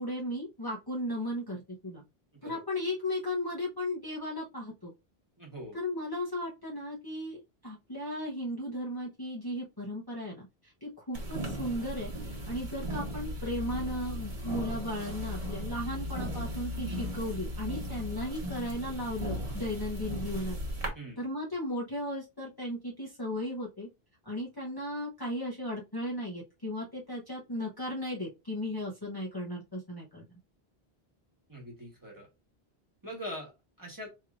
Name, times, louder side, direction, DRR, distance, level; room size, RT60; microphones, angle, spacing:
voice 1, 0.0-2.0 2.4-4.9 5.7-20.6 21.2-23.9 24.2-30.2, left 1 dB, 25° left, -4 dB, 0.9 m, -36 dB
voice 2, 5.4-5.8 20.9-21.2 31.5-32.3 33.0-34.1, equal, 20° right, -1 dB, 1.4 m, -42 dB
sound 1, 11.1-20.9, equal, 35° right, 1.2 m, -37 dB
4.6 x 3.1 x 2.5 m, 0.25 s
omnidirectional pair, 1.1 m